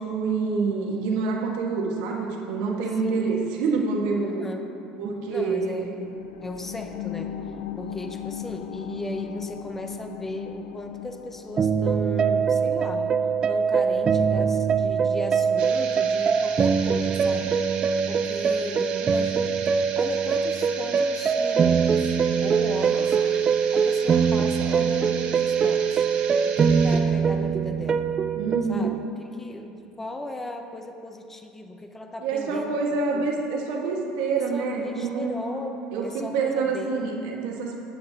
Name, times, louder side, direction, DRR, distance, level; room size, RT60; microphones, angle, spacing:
voice 1, 0.0-4.4 5.0-5.9 18.6-18.8 28.4-28.9 32.2-35.4 35.9-37.8, right 4 dB, 75° right, 0 dB, 1.6 m, -27 dB
voice 2, 3.0-3.3 4.2-4.7 5.3-7.4 7.8-13.1 13.5-17.6 18.1-23.2 23.7-26.0 26.4-28.1 28.7-28.9 29.3-32.8 33.1-33.3 34.5-35.7 36.0-37.0, left 1 dB, 15° left, 5 dB, 0.7 m, -37 dB
sound 1, 5.6-16.7 17.1-17.2, left 9 dB, 80° left, 0.5 m, -39 dB
sound 2, 11.6-29.0, right 6 dB, 30° right, 0.4 m, -23 dB
sound 3, 15.6-27.0, right 6 dB, 60° right, 1.1 m, -37 dB
16.5 x 7.8 x 2.9 m, 2.6 s
supercardioid pair, 110°, 2 cm